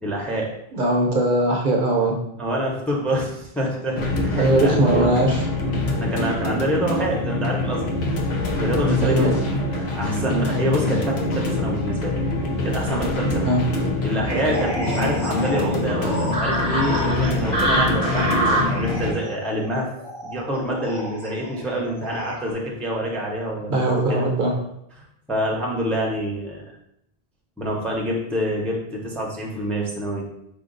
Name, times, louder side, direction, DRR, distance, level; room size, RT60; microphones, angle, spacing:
voice 1, 0.0-0.5 2.4-5.1 5.7-9.3 9.7-12.2 12.6-13.5 14.0-19.9 20.2-24.3 25.3-26.7 27.6-30.3, equal, ahead, -2 dB, 0.6 m, -26 dB
voice 2, 0.7-2.2 4.3-5.4 9.0-9.4 13.4-13.6 23.7-24.5, right 1 dB, 55° right, 0 dB, 0.8 m, -20 dB
sound 1, 4.0-19.1, left 2 dB, 90° left, 1.0 m, -25 dB
sound 2, 14.3-22.5, right 1 dB, 45° left, 1.6 m, -27 dB
5.0 x 2.3 x 3.8 m, 0.78 s
omnidirectional pair, 1.0 m